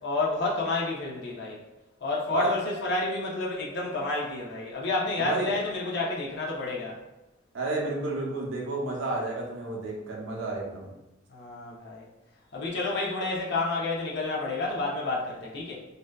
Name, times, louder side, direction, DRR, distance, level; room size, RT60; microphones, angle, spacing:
voice 1, 0.0-1.6 2.0-7.0 11.3-12.1 12.5-15.8, left 2 dB, 55° left, -3 dB, 0.5 m, -30 dB
voice 2, 5.2-5.5 7.5-10.9, right 2 dB, 70° right, -2 dB, 0.6 m, -31 dB
2.6 x 2.2 x 2.2 m, 0.98 s
head